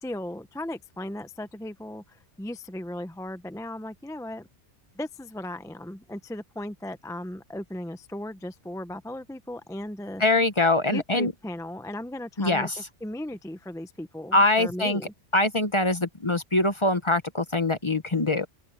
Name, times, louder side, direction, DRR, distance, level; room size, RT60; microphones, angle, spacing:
voice 1, 0.0-4.5 4.9-10.2 10.9-12.7 13.0-15.1, left 1 dB, 5° left, 0.6 m, -36 dB
voice 2, 10.2-11.3 12.4-12.7 14.3-15.0 15.3-18.5, left 2 dB, 25° left, 0.9 m, -23 dB
open air
omnidirectional pair, 1.2 m